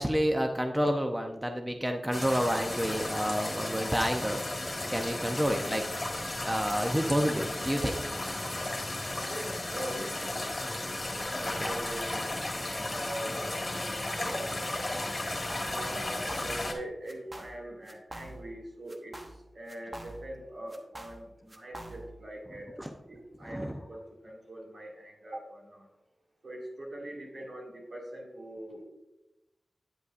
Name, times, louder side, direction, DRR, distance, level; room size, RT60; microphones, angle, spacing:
voice 1, 0.0-4.4 4.9-5.8 6.4-8.0 11.5-11.7 22.8-22.9 23.4-23.8, equal, 15° right, 4 dB, 0.6 m, -29 dB
sound 1, 2.1-16.7, left 1 dB, 35° left, 1.6 m, -34 dB
voice 2, 9.3-10.3 11.4-12.3 12.9-19.2 19.5-25.9 26.4-28.8, right 1 dB, 65° right, -2 dB, 2.2 m, -42 dB
sound 2, 15.2-15.8 16.0-16.8 17.1-17.6 17.9-18.6 18.9-20.4 20.7-22.2, right 1 dB, 30° right, 1.1 m, -45 dB
9.6 x 8.1 x 2.5 m, 0.95 s
wide cardioid pair, 70°, 0 cm